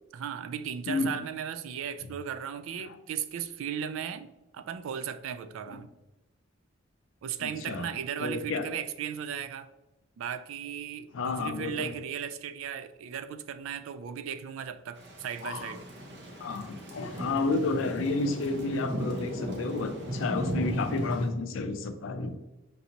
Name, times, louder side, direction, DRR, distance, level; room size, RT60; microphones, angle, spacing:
voice 1, 0.1-5.9 7.2-9.7 10.2-15.8, right 8 dB, 80° right, 0.3 m, -36 dB
voice 2, 7.4-7.9 8.2-8.6 11.1-11.9 15.4-15.7 16.4-22.4, left 3 dB, 75° left, 0.4 m, -31 dB
Thunder / Rain, 15.0-21.3, equal, 60° right, 0.7 m, -36 dB
5.2 x 2.7 x 2.9 m
head